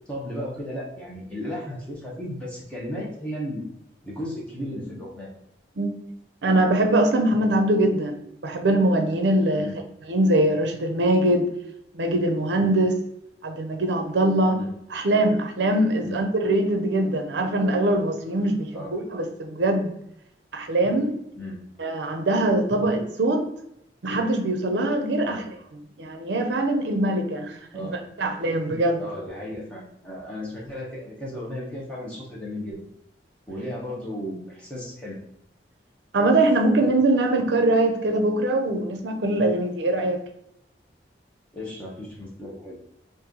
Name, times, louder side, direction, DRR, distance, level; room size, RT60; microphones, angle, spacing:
voice 1, 0.1-3.6 4.0-5.3 9.6-9.8 14.5-14.7 16.0-16.2 18.7-19.0 21.4-21.6 25.3-25.5 27.7-28.0 29.0-32.8 33.5-35.2 41.5-42.8, left 1 dB, 5° left, -4 dB, 0.9 m, -35 dB
voice 2, 6.4-9.7 10.1-11.5 11.9-13.0 13.4-14.6 14.9-19.9 20.5-21.1 21.8-23.5 24.0-25.4 26.0-29.0 36.1-40.2, right 1 dB, 75° right, 4 dB, 0.5 m, -22 dB
3.1 x 2.6 x 3.7 m, 0.78 s
head